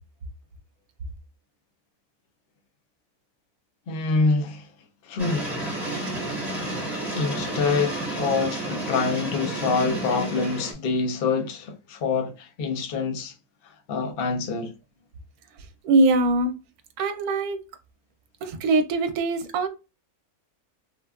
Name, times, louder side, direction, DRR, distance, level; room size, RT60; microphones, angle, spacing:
voice 1, 3.9-4.7 5.0-5.5 7.1-13.3 13.6-14.7, left 4 dB, 55° left, 0.6 m, -26 dB
sound 1, 5.2-10.7, right 1 dB, ahead, 0.9 m, -31 dB
voice 2, 15.8-16.5 17.0-17.6 18.4-19.7, right 2 dB, 85° right, 1.1 m, -22 dB
3.4 x 2.2 x 2.3 m
omnidirectional pair, 1.6 m